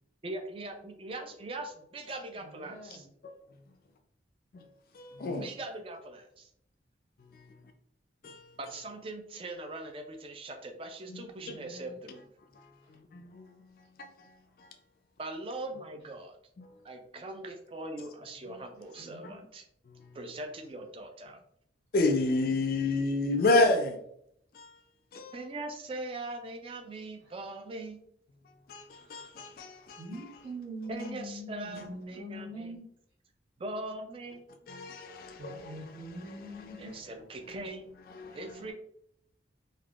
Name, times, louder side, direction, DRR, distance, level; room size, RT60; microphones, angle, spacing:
voice 1, 0.2-3.1 5.2-6.5 8.6-12.2 15.2-16.4 16.8-19.6 20.1-21.4 25.3-28.0 30.9-32.8 33.6-34.4 36.8-37.8 38.3-38.7, right 2 dB, 30° right, 0.3 m, -41 dB
voice 2, 2.3-3.1 11.4-11.9 19.0-19.5 28.9-29.1 30.0-32.8 35.4-36.9, right 1 dB, 60° right, 1.0 m, -43 dB
voice 3, 4.9-5.5 8.2-8.5 11.1-11.2 11.5-11.6 12.6-12.7 12.9-13.5 14.0-14.1 21.9-24.0 24.5-24.7 25.1-25.3 28.7-30.0 34.7-35.8 36.7-36.8 38.2-38.4, left 2 dB, 50° left, 0.3 m, -29 dB
3.3 x 2.2 x 2.4 m
head